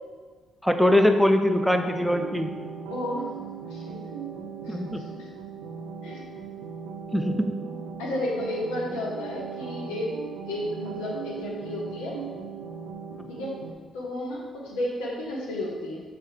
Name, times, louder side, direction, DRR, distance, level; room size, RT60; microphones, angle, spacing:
voice 1, 0.6-2.5 4.7-5.0 7.1-7.5, left 1 dB, ahead, 6 dB, 0.5 m, -22 dB
sound 1, 1.5-13.7, right 6 dB, 85° right, 0.3 m, -38 dB
voice 2, 2.9-3.2 3.7-4.0 4.6-5.3 6.0-6.2 8.0-10.1 10.5-12.2 13.3-13.6 13.9-16.0, left 1 dB, 85° left, -2 dB, 0.7 m, -32 dB
4.3 x 3.2 x 3.7 m, 1.5 s
hypercardioid pair, 50°, 0 cm